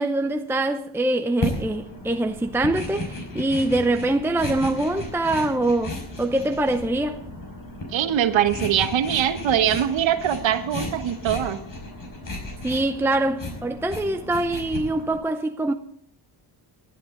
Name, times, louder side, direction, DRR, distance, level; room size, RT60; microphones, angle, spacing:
voice 1, 0.0-7.2 12.6-15.7, right 2 dB, 5° right, 0.7 m, -24 dB
sound 1, 1.4-15.2, left 1 dB, 40° left, 5.3 m, -34 dB
voice 2, 7.9-11.6, right 10 dB, 65° right, 1.4 m, -22 dB
19.0 x 12.0 x 3.9 m
cardioid pair, 95°, 48 cm